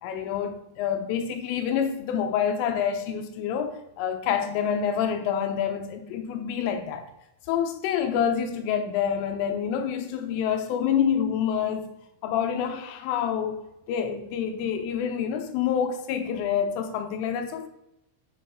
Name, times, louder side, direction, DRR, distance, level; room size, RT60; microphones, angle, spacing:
voice 1, 0.0-7.1 7.5-11.9 12.2-13.6 13.9-17.7, left 8 dB, 85° left, 3.4 m, -27 dB
9.6 x 5.5 x 5.2 m
omnidirectional pair, 5.8 m